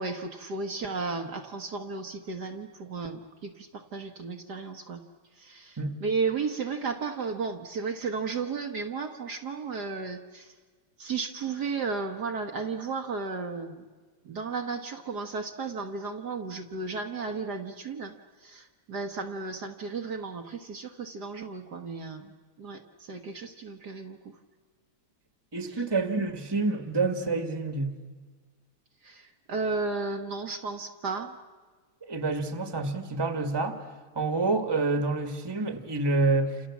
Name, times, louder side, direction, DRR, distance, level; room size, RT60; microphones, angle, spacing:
voice 1, 0.0-5.0 5.4-10.5 11.0-13.9 14.2-24.4 25.7-25.8 29.0-31.4, right 4 dB, 55° right, 4 dB, 1.7 m, -34 dB
voice 2, 25.5-27.9 32.1-33.8 34.1-36.6, right 3 dB, 15° right, 7 dB, 1.6 m, -28 dB
29.0 x 28.0 x 7.3 m, 1.4 s
omnidirectional pair, 2.3 m